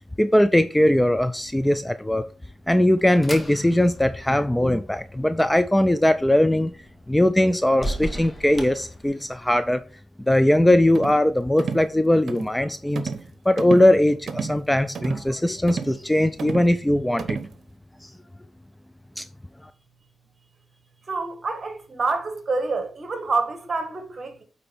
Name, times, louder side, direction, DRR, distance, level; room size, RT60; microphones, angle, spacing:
voice 1, 0.2-2.2 2.7-6.7 7.1-9.8 10.3-13.1 13.5-17.4 18.0-18.1 19.2-19.3, left 1 dB, 10° left, 0.5 m, -20 dB
sound 1, 2.3-9.6, right 1 dB, 25° left, 2.0 m, -38 dB
sound 2, 10.9-11.2 11.6-11.9 12.3-12.5 13.0-13.3 13.6-13.9 14.3-14.6 14.9-15.3 15.7-16.0 16.4-16.7 17.2-17.5, right 5 dB, 65° right, 0.9 m, -31 dB
voice 2, 21.1-24.4, right 3 dB, 40° right, 1.9 m, -27 dB
8.9 x 4.0 x 4.3 m
cardioid pair, 80°, 0 cm